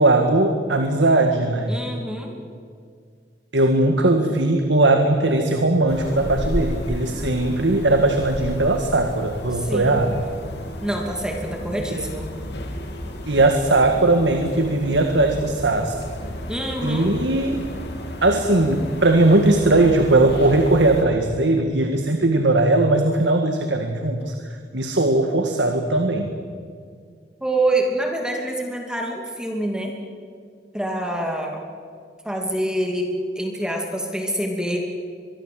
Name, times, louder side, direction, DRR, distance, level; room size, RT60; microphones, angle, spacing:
voice 1, 0.0-1.7 3.5-10.2 12.0-12.1 13.3-16.0 16.8-17.6 18.2-26.3, right 2 dB, 85° right, 5 dB, 1.8 m, -19 dB
voice 2, 1.7-2.3 9.5-10.0 10.8-12.3 16.5-17.2 27.4-30.0 30.7-31.6 32.2-34.8, right 1 dB, 5° right, 1 dB, 2.5 m, -26 dB
sound 1, 5.9-21.0, equal, 70° left, 3.3 m, -33 dB
24.0 x 23.0 x 7.7 m, 2.1 s
head